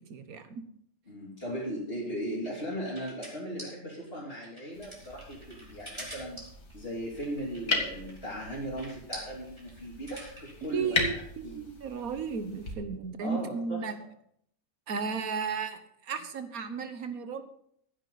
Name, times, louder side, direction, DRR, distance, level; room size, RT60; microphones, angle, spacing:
voice 1, 0.1-0.6 10.7-14.0 14.9-17.4, right 5 dB, 65° right, 10 dB, 1.5 m, -34 dB
voice 2, 1.1-6.4 6.7-11.6 13.2-13.8, equal, 40° left, -8 dB, 3.3 m, -38 dB
sound 1, 1.9-10.7, equal, 15° right, 3.7 m, -46 dB
sound 2, 4.7-12.7, left 3 dB, 70° left, 2.5 m, -37 dB
15.5 x 10.0 x 4.0 m, 0.68 s
omnidirectional pair, 1.6 m